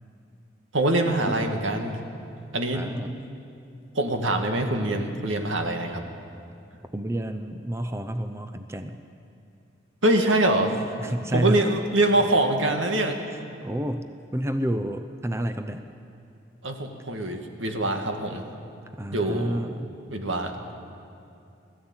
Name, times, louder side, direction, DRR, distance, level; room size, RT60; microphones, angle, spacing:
voice 1, 0.7-2.0 2.5-2.8 3.9-6.0 10.0-10.7 11.3-13.2 16.6-18.4 19.1-19.7 20.1-20.5, right 1 dB, 85° right, 4 dB, 2.0 m, -24 dB
voice 2, 2.7-3.2 6.9-9.0 11.0-11.6 13.3-14.0 14.3-15.8 19.0-19.9, right 1 dB, 15° right, 8 dB, 0.6 m, -29 dB
20.5 x 14.5 x 8.9 m, 2.6 s
head